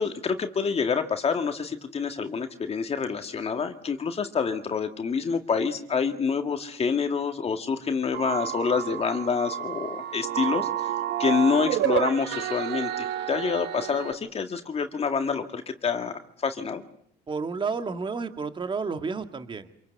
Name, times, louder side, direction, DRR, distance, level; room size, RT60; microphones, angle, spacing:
voice 1, 0.0-16.8, left 5 dB, 35° left, 6 dB, 1.9 m, -27 dB
sound 1, 8.1-14.1, right 12 dB, 80° right, 1.2 m, -30 dB
voice 2, 17.3-19.8, right 4 dB, 30° right, 8 dB, 1.9 m, -31 dB
27.0 x 23.0 x 8.0 m, 0.66 s
cardioid pair, 110°, 17 cm